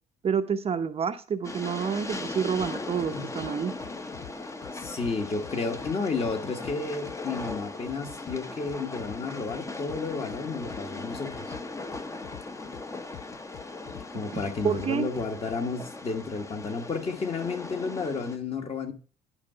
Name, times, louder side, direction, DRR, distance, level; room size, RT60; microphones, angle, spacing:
voice 1, 0.2-3.7 14.3-15.1, right 7 dB, 35° right, 0.7 m, -29 dB
Train, 1.4-18.4, left 3 dB, 15° left, 0.9 m, -39 dB
sound 1, 2.6-3.1 3.4-4.3 4.6-6.3 6.6-7.6 7.9-9.6 9.9-10.8 11.1-12.8 13.1-14.1 14.3-15.6, left 13 dB, 70° left, 0.7 m, -46 dB
voice 2, 4.7-11.5 14.1-18.9, left 4 dB, 35° left, 1.6 m, -32 dB
11.0 x 4.8 x 5.5 m
cardioid pair, 110°, 17 cm